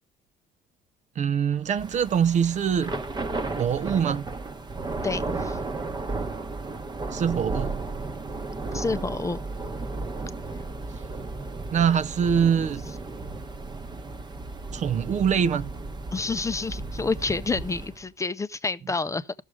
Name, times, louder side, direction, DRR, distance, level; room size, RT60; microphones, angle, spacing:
voice 1, 1.2-2.9 3.6-4.3 7.1-7.8 11.7-12.8 14.7-15.7, right 7 dB, 45° right, 0.6 m, -23 dB
Thunder / Rain, 1.7-18.0, right 3 dB, 25° right, 1.0 m, -34 dB
voice 2, 5.0-5.6 8.7-9.4 10.5-10.6 12.9-13.0 16.1-19.3, left 4 dB, 20° left, 0.6 m, -29 dB
14.0 x 6.4 x 4.9 m
cardioid pair, 110°, 17 cm